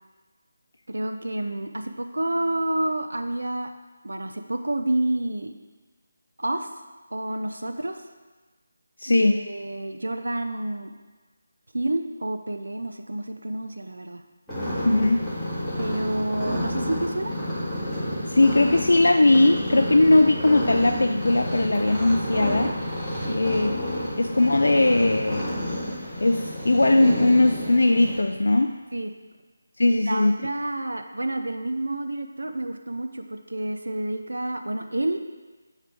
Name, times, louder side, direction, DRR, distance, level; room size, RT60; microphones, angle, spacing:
voice 1, 0.9-3.7 4.0-5.5 6.4-6.7 7.1-8.0 9.1-10.9 11.7-14.2 15.8-17.3 23.3-23.5 28.9-29.1 29.9-35.2, right 1 dB, 75° right, 6 dB, 0.6 m, -29 dB
voice 2, 9.0-9.4 14.8-15.2 18.3-22.7 23.3-25.4 26.2-28.7 29.8-30.3, left 2 dB, 70° left, 4 dB, 0.3 m, -19 dB
sound 1, 14.5-28.2, equal, 5° right, 1.9 m, -30 dB
6.6 x 3.2 x 5.1 m, 1.3 s
figure-of-eight pair, 155°, 0 cm